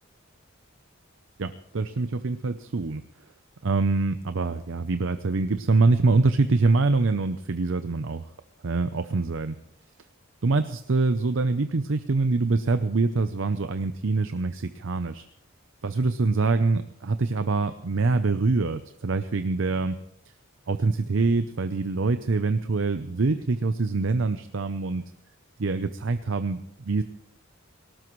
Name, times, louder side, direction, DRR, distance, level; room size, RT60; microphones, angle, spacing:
voice 1, 1.4-3.0 3.6-8.3 8.6-9.6 10.4-15.3 15.8-20.0 20.7-25.0 25.6-27.0, right 3 dB, 70° right, 10 dB, 0.6 m, -25 dB
19.0 x 18.5 x 3.2 m, 0.70 s
head